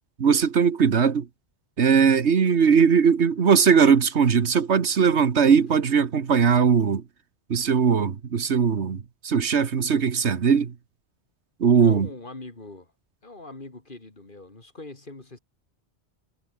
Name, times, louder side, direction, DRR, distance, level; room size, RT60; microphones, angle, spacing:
voice 1, 0.2-1.3 1.8-7.0 7.5-10.7 11.6-12.1, right 6 dB, 85° right, 1.6 m, -20 dB
voice 2, 11.8-12.9 13.2-15.4, left 2 dB, 50° left, 3.0 m, -42 dB
omnidirectional pair, 1.1 m